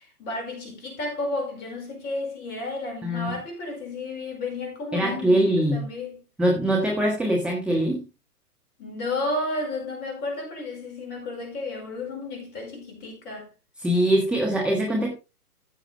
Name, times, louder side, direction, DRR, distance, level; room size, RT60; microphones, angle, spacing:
voice 1, 0.0-6.2 8.8-13.5, left 2 dB, 20° left, 4.9 m, -32 dB
voice 2, 3.0-3.4 4.9-5.8 6.4-8.0 13.8-15.1, right 1 dB, ahead, 1.4 m, -22 dB
15.0 x 7.0 x 3.3 m
figure-of-eight pair, 130°, 46 cm